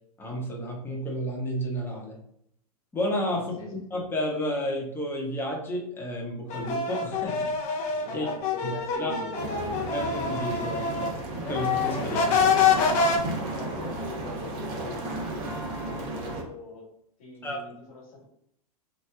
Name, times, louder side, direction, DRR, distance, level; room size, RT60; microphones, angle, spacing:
voice 1, 0.2-2.2 2.9-7.9 8.1-8.3 8.6-8.7 9.0-9.1 9.9-10.9 11.4-12.6 17.4-17.6, equal, 10° left, -2 dB, 0.9 m, -31 dB
voice 2, 3.3-3.7 8.0-9.7 13.5-16.8 17.2-18.2, left 3 dB, 65° left, -1 dB, 1.4 m, -42 dB
sound 1, 6.5-11.2 11.5-13.2, left 5 dB, 40° left, 0.6 m, -26 dB
sound 2, 9.3-16.4, right 2 dB, 45° right, 0.9 m, -34 dB
3.0 x 2.2 x 3.4 m, 0.72 s
hypercardioid pair, 110°, 19 cm